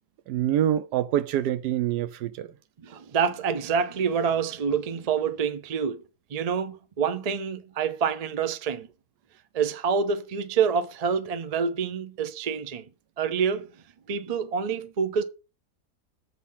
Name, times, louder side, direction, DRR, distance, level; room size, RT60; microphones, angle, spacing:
voice 1, 0.3-2.5, right 11 dB, 85° right, 1.2 m, -25 dB
voice 2, 2.8-6.0 6.3-8.9 9.5-12.9 13.2-13.7 14.1-15.2, right 6 dB, 65° right, 0.3 m, -27 dB
7.4 x 4.1 x 5.6 m
omnidirectional pair, 1.7 m